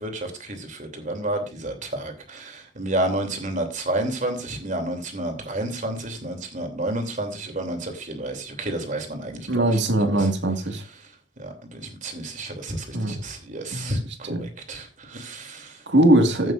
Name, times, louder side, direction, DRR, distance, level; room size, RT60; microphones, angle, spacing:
voice 1, 0.0-9.7 10.1-10.3 11.4-15.8, right 1 dB, 45° right, 3.0 m, -30 dB
voice 2, 9.5-10.8 12.9-13.2 13.7-13.9 14.2-14.5 15.9-16.5, right 1 dB, 70° right, 1.9 m, -20 dB
15.5 x 9.2 x 2.6 m
head